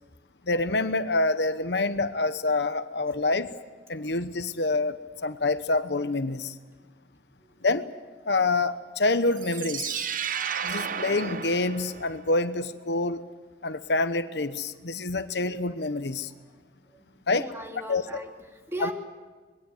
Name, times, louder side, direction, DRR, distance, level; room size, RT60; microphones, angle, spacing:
voice 1, 0.5-3.5 3.9-6.5 7.6-7.9 8.3-10.0 10.6-13.2 13.6-16.3 17.3-17.5 17.9-18.0 18.8-18.9, left 2 dB, 70° left, 11 dB, 1.1 m, -27 dB
sound 1, 9.3-12.4, right 7 dB, 50° right, 0.8 m, -33 dB
voice 2, 16.9-18.9, equal, 15° right, 2 dB, 3.0 m, -38 dB
26.0 x 21.5 x 8.0 m, 1.4 s
head